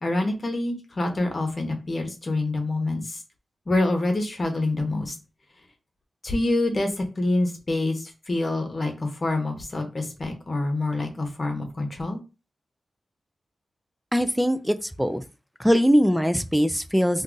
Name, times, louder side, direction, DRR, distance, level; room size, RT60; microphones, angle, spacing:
voice 1, 0.0-3.2 3.7-5.1 6.2-12.2, left 2 dB, 40° left, 0.9 m, -26 dB
voice 2, 14.1-15.2 15.6-17.2, equal, ahead, 0.3 m, -21 dB
2.6 x 2.4 x 3.7 m
wide cardioid pair, 95°, 0 cm